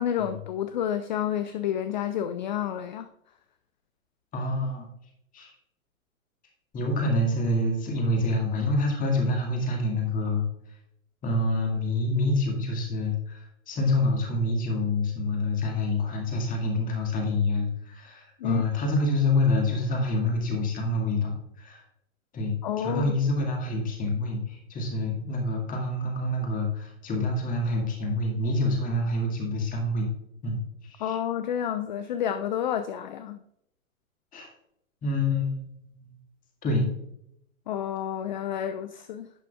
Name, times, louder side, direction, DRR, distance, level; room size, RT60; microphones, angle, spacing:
voice 1, 0.0-3.1 18.4-18.6 22.6-23.2 31.0-33.4 37.7-39.3, left 9 dB, 35° left, 0.4 m, -29 dB
voice 2, 4.3-4.9 5.3-5.5 6.7-10.5 11.2-21.8 22.3-30.1 30.4-31.2 34.3-34.5 35.0-35.7 36.6-36.9, left 2 dB, 20° left, 2.0 m, -27 dB
11.0 x 8.2 x 2.4 m
figure-of-eight pair, 105°, 41 cm